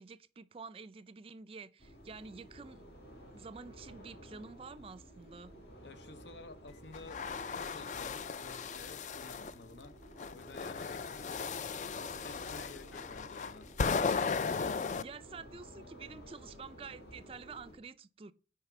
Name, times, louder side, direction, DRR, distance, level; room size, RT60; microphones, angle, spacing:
voice 1, 0.0-2.8 3.3-5.5 14.5-14.6 14.9-18.3, right 4 dB, 30° right, 0.4 m, -49 dB
sound 1, 1.8-17.8, right 1 dB, 55° left, 2.2 m, -53 dB
voice 2, 5.8-7.2 7.5-10.0 10.3-13.7, left 3 dB, 75° left, 0.8 m, -52 dB
sound 2, 6.9-9.5 10.2-15.0, left 5 dB, 40° left, 0.3 m, -36 dB
6.5 x 4.8 x 5.9 m
head